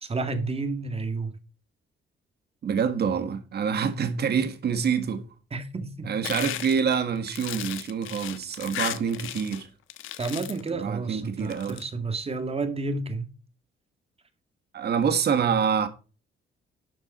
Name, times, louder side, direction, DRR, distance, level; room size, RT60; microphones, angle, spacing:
voice 1, 0.0-1.4 5.5-6.2 10.2-13.3, right 3 dB, 30° right, 2.1 m, -31 dB
voice 2, 2.6-5.2 6.0-9.7 10.7-11.8 14.7-15.9, right 7 dB, 55° right, 1.8 m, -26 dB
sound 1, 6.2-9.6 9.9-10.7 11.4-11.8, left 13 dB, 90° left, 1.2 m, -35 dB
12.0 x 7.3 x 4.3 m
cardioid pair, 90°, 20 cm